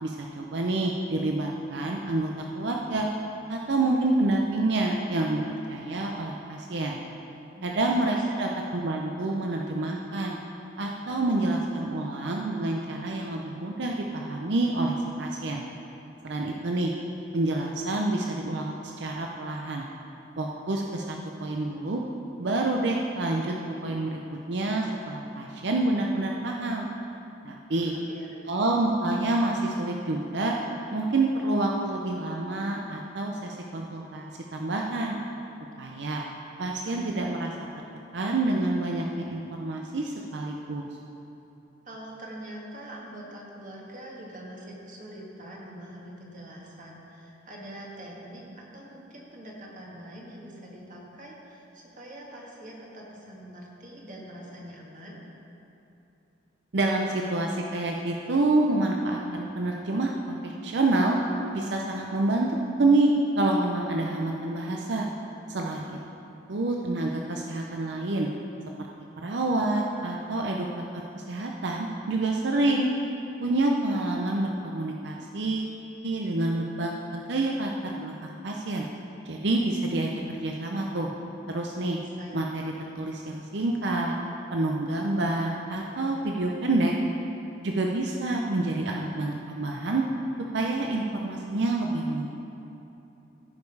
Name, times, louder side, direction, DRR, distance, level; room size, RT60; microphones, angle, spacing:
voice 1, 0.0-3.1 3.5-5.4 5.7-7.0 7.6-10.3 10.8-15.6 16.2-16.9 17.3-19.9 20.4-22.0 22.4-23.5 23.8-24.2 24.5-26.9 27.4-27.9 28.5-30.6 30.9-35.2 35.8-36.2 36.6-37.5 38.1-40.8 56.7-61.2 61.5-65.1 65.5-66.0 66.5-68.3 69.2-70.8 71.1-72.9 73.4-75.8 76.0-78.9 79.3-80.1 80.4-81.1 81.5-82.0 82.3-82.6 82.9-84.1 84.5-86.9 87.6-90.0 90.5-92.3, right 2 dB, 60° right, 0 dB, 0.6 m, -27 dB
voice 2, 7.5-8.2 27.7-28.4 41.8-55.2 81.6-82.3, right 1 dB, 45° right, -3 dB, 1.6 m, -44 dB
15.5 x 5.4 x 4.7 m, 3.0 s
head